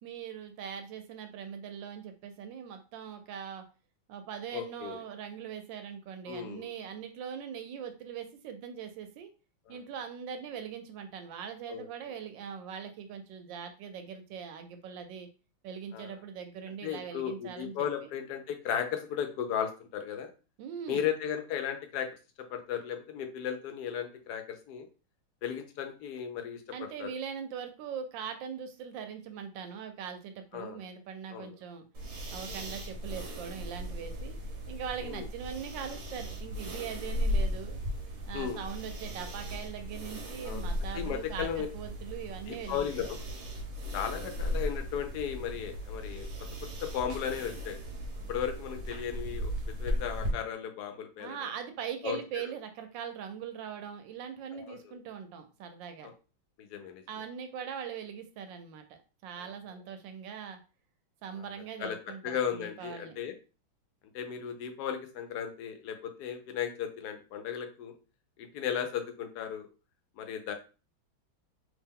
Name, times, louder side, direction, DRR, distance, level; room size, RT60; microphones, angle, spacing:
voice 1, 0.0-3.6 4.1-9.3 9.7-15.3 15.6-18.1 20.6-21.1 26.7-31.8 32.3-34.4 34.7-37.8 38.3-42.9 51.2-56.1 57.1-60.6 61.2-63.2, right 7 dB, 75° right, 7 dB, 1.2 m, -41 dB
voice 2, 4.5-5.0 6.3-6.7 9.7-9.8 11.7-11.9 15.9-16.1 16.8-20.3 20.9-22.1 22.4-24.9 25.4-27.1 30.5-30.8 31.3-31.5 35.0-35.3 38.3-38.6 40.4-40.7 40.9-41.7 42.5-43.2 43.9-46.3 46.8-47.8 48.3-49.5 49.8-51.4 52.0-52.2 54.5-55.0 56.0-56.1 56.6-57.0 61.4-61.5 61.8-62.0 62.2-63.3 64.1-67.9 68.4-69.7 70.2-70.5, left 8 dB, 65° left, 6 dB, 1.0 m, -35 dB
sound 1, 31.9-50.3, equal, 50° right, 0.9 m, -37 dB
3.3 x 2.8 x 3.6 m, 0.33 s
omnidirectional pair, 2.2 m